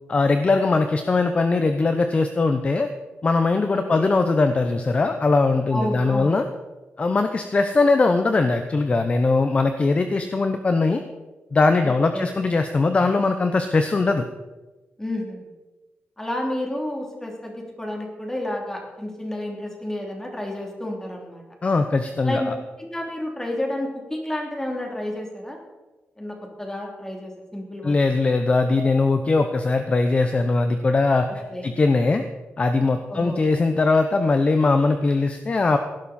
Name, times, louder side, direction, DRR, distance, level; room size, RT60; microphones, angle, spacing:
voice 1, 0.1-2.9 3.2-6.4 7.0-11.0 11.5-14.2 21.6-22.5 27.8-31.3 31.6-32.2 32.6-35.8, left 3 dB, 30° left, 8 dB, 0.8 m, -20 dB
voice 2, 3.7-4.1 5.7-6.3 11.8-12.3 15.0-15.4 16.2-21.4 22.2-22.5 22.8-25.6 26.2-28.0 31.3-31.8 33.1-33.4, left 1 dB, 10° left, 1 dB, 3.1 m, -30 dB
18.0 x 11.5 x 4.3 m, 1.1 s
wide cardioid pair, 135°, 4 cm